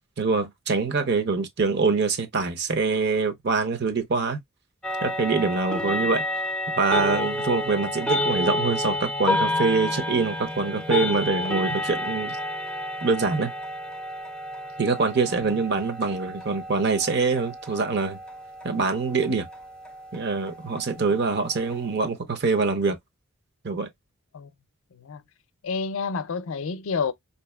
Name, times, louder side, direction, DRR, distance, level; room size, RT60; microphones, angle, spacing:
voice 1, 0.2-4.4 5.0-6.2 6.8-12.4 13.0-13.5 14.8-18.2 18.6-19.5 20.1-23.0 23.6-23.9, right 4 dB, 55° right, 0.7 m, -24 dB
sound 1, 4.8-22.1, left 1 dB, 5° left, 0.4 m, -30 dB
voice 2, 25.6-27.1, left 5 dB, 75° left, 0.4 m, -29 dB
4.7 x 2.7 x 2.2 m
head